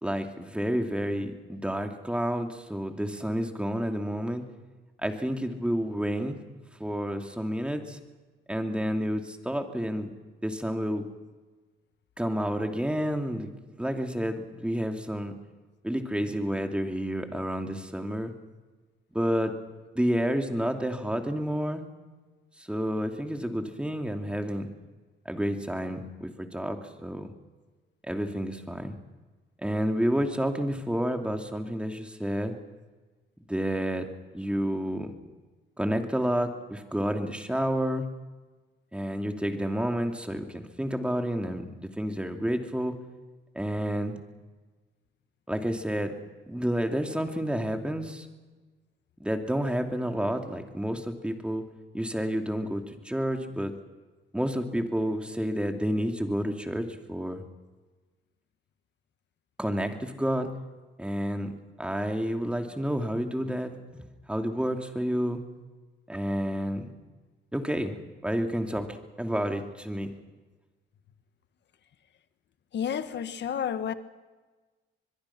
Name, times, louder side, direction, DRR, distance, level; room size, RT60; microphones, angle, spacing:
voice 1, 0.0-4.4 5.0-6.4 6.8-8.0 8.5-10.1 10.4-11.0 12.2-15.3 15.8-18.3 19.1-19.5 19.9-21.8 22.6-24.7 25.2-27.3 28.1-29.0 29.6-32.5 33.5-34.1 34.3-35.1 35.8-38.1 38.9-42.9 43.5-44.1 45.5-46.1 46.5-48.3 49.2-51.6 51.9-53.7 54.3-57.4 59.6-60.5 61.0-61.5 61.8-65.4 66.1-66.9 67.5-68.0 68.2-70.1, equal, 5° right, 4 dB, 2.8 m, -30 dB
voice 2, 72.7-73.9, left 8 dB, 60° left, 11 dB, 1.6 m, -30 dB
24.5 x 22.0 x 6.1 m, 1.3 s
cardioid pair, 90°, 20 cm